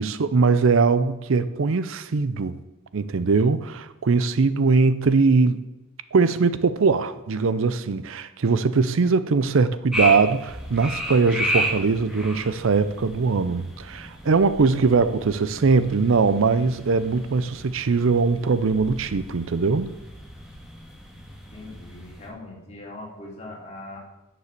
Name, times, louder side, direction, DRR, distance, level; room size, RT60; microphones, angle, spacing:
voice 1, 0.0-2.6 2.9-5.6 6.1-19.9, right 4 dB, 65° right, 0.5 m, -21 dB
sound 1, 9.9-22.3, equal, 5° right, 1.9 m, -34 dB
voice 2, 21.5-24.0, left 2 dB, 30° left, 2.9 m, -40 dB
9.8 x 7.0 x 6.6 m
head